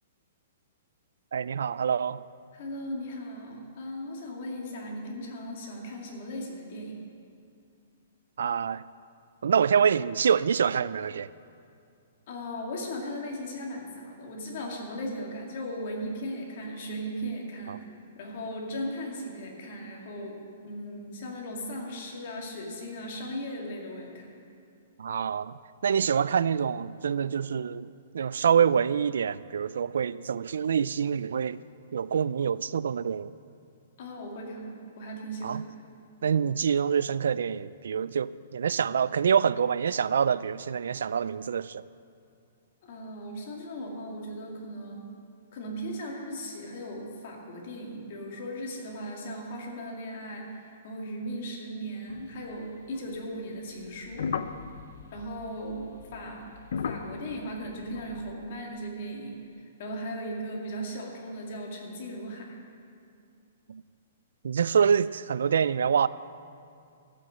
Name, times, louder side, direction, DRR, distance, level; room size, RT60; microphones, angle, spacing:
voice 1, 1.3-2.2 8.4-8.8 9.4-11.3 17.7-17.8 25.0-31.6 31.9-33.3 35.4-35.6 36.2-41.8 63.7-63.8 64.4-66.1, right 7 dB, 85° right, 0.3 m, -26 dB
voice 2, 2.5-7.0 12.3-17.8 18.2-24.3 34.0-35.8 42.8-45.1 45.5-54.2 55.1-55.9 56.1-56.5 56.8-62.5, equal, 45° left, 2.3 m, -37 dB
sound 1, 52.1-53.2 53.8-58.3, left 6 dB, 65° left, 0.6 m, -38 dB
15.0 x 6.6 x 7.5 m
hypercardioid pair, 170°, 0 cm